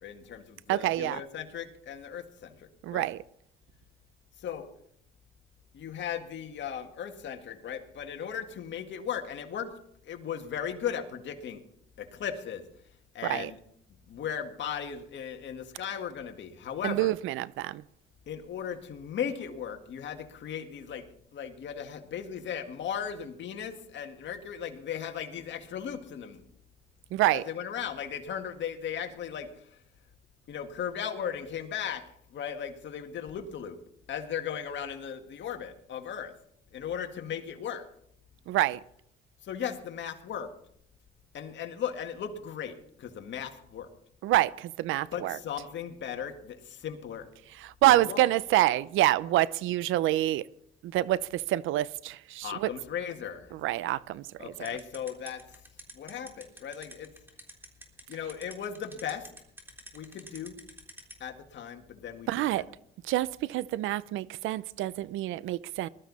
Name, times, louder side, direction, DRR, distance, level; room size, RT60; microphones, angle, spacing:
voice 1, 0.0-3.1 4.4-4.7 5.7-9.7 10.0-11.6 12.0-12.6 13.1-13.6 14.1-17.1 18.3-26.5 27.3-29.8 30.5-32.0 32.3-33.8 34.1-36.3 36.7-37.9 39.4-40.5 41.3-43.9 45.1-47.3 47.9-48.3 52.4-53.5 54.4-55.6 55.9-57.1 58.1-59.3 59.9-60.6 61.2-62.6, left 8 dB, 65° left, 2.0 m, -37 dB
voice 2, 0.7-1.2 2.8-3.2 13.2-13.5 16.8-17.8 27.1-27.4 38.5-38.8 44.2-45.4 47.8-50.4 50.8-52.7 53.6-54.3 62.3-62.6 63.1-65.9, right 15 dB, 90° right, 0.6 m, -27 dB
sound 1, 54.6-61.1, right 1 dB, 10° right, 3.5 m, -46 dB
20.5 x 13.0 x 4.1 m
cardioid pair, 90°, 20 cm